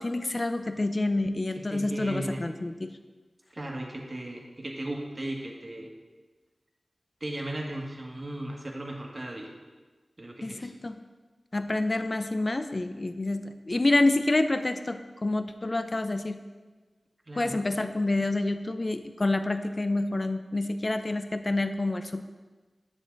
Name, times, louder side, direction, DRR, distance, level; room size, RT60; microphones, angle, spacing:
voice 1, 0.0-2.9 10.4-11.0 11.5-16.5 17.4-22.2, left 2 dB, 45° left, 9 dB, 0.6 m, -28 dB
voice 2, 1.5-2.5 3.5-5.9 7.2-9.5 10.2-10.7 17.3-17.6, right 1 dB, 45° right, 0 dB, 1.7 m, -36 dB
9.9 x 7.2 x 4.0 m, 1.3 s
cardioid pair, 45°, 0 cm